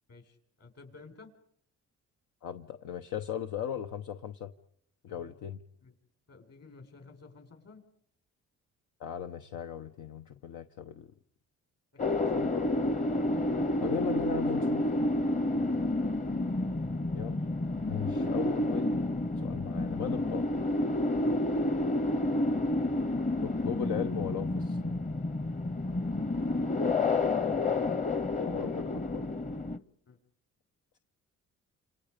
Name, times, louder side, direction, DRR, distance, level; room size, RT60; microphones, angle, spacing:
voice 1, 0.1-1.3 5.1-5.4 5.8-5.9 6.3-7.8 12.1-12.6 15.6-16.4 21.2-21.4 27.4-28.8 29.0-29.2 30.1-30.2, left 4 dB, 55° left, 5 dB, 5.3 m, -53 dB
voice 2, 2.4-4.5 5.0-5.6 9.0-11.1 12.3-12.6 13.8-14.9 17.1-17.5 17.9-19.0 19.4-20.5 23.4-25.0 28.4-28.7 29.1-29.2, left 9 dB, 85° left, 6 dB, 1.0 m, -37 dB
sound 1, 12.0-29.8, left 2 dB, 25° left, 1.0 m, -30 dB
28.5 x 28.0 x 5.2 m, 0.68 s
cardioid pair, 90°, 30 cm